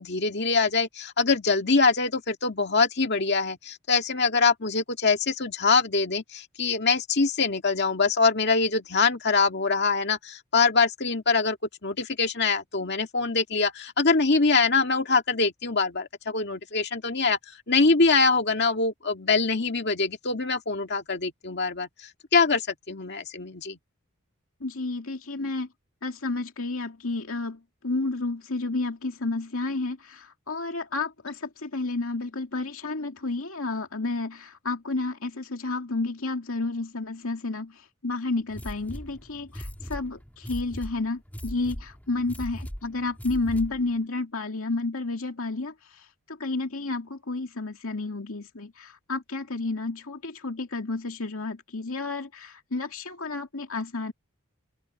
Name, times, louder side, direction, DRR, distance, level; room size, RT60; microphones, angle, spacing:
voice 1, 0.0-11.6 11.8-17.4 17.7-21.9 22.3-23.8, left 4 dB, 50° left, 2.1 m, -24 dB
voice 2, 24.6-25.7 26.0-54.1, left 3 dB, 70° left, 2.4 m, -31 dB
sound 1, 38.5-43.9, equal, 10° left, 1.9 m, -39 dB
open air
head